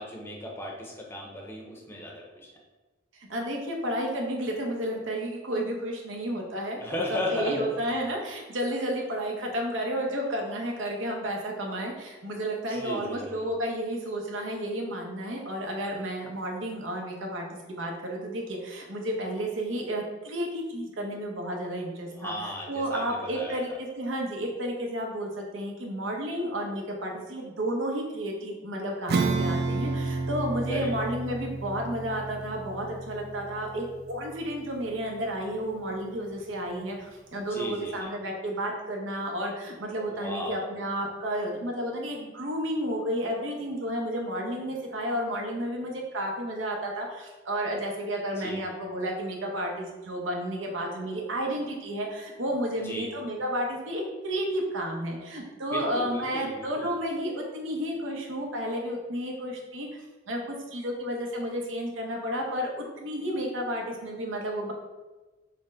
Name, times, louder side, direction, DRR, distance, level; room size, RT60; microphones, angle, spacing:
voice 1, 0.0-2.5 6.8-7.8 12.7-13.5 22.0-23.8 30.7-30.9 37.5-38.1 40.0-40.6 48.4-48.6 52.8-53.1 55.7-56.9, left 1 dB, 10° left, -1 dB, 0.6 m, -36 dB
voice 2, 3.1-22.3 22.7-64.7, equal, 85° right, 0 dB, 0.8 m, -32 dB
Acoustic guitar / Strum, 29.1-35.1, right 3 dB, 55° right, 0.3 m, -31 dB
4.2 x 2.1 x 3.7 m, 1.2 s
head